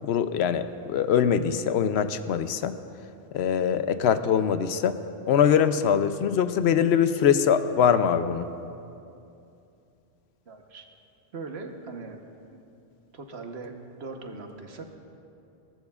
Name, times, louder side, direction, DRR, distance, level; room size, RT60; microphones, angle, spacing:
voice 1, 0.0-2.8 3.3-5.0 5.3-8.5, left 8 dB, 75° left, 11 dB, 0.9 m, -23 dB
voice 2, 10.5-10.9 11.3-12.2 12.5-12.6 13.1-15.0, right 3 dB, 75° right, 4 dB, 1.3 m, -40 dB
20.0 x 18.0 x 2.4 m, 2.6 s
omnidirectional pair, 1.1 m